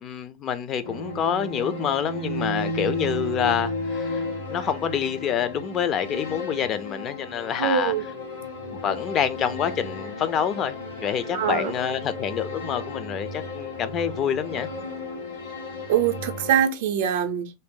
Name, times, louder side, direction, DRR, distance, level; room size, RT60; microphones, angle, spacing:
voice 1, 0.0-4.2 4.5-7.9 8.8-14.7, left 8 dB, 35° left, 0.4 m, -27 dB
sound 1, 0.8-16.6, left 2 dB, 85° left, 1.3 m, -33 dB
voice 2, 7.6-8.0 11.3-11.7 15.9-17.5, right 9 dB, 60° right, 0.5 m, -23 dB
2.6 x 2.1 x 3.6 m
figure-of-eight pair, 85°, 0 cm